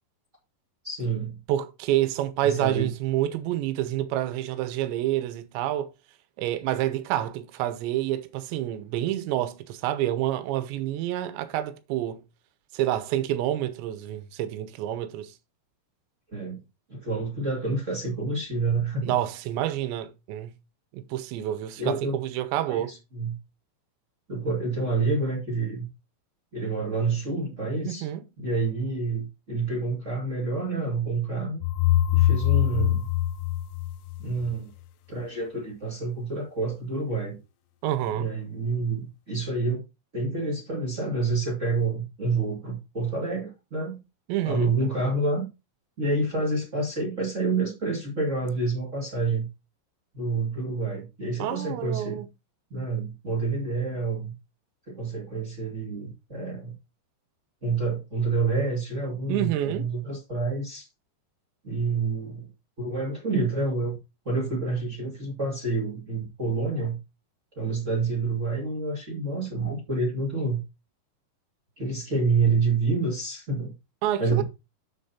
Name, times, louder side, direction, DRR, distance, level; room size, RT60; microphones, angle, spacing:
voice 1, 0.8-1.4 2.4-2.9 16.3-16.6 16.9-19.2 21.8-22.2 22.7-23.4 24.3-25.9 26.5-28.1 28.4-31.6 32.1-33.1 34.2-34.7 35.1-37.4 38.1-39.8 40.1-44.0 44.4-45.5 46.0-49.5 50.1-52.2 52.7-54.3 54.9-56.7 57.6-60.9 61.6-62.5 62.8-64.0 64.2-67.0 67.5-70.6 71.8-73.7 74.2-74.4, right 3 dB, 30° right, 1.4 m, -28 dB
voice 2, 1.5-5.9 6.4-12.2 12.7-15.3 19.0-20.5 20.9-22.9 27.8-28.2 37.8-38.3 44.3-44.7 51.4-52.3 59.3-59.9 74.0-74.4, right 13 dB, 75° right, 3.1 m, -28 dB
sound 1, 31.6-34.5, left 13 dB, 80° left, 2.6 m, -23 dB
7.5 x 7.3 x 4.3 m
omnidirectional pair, 5.5 m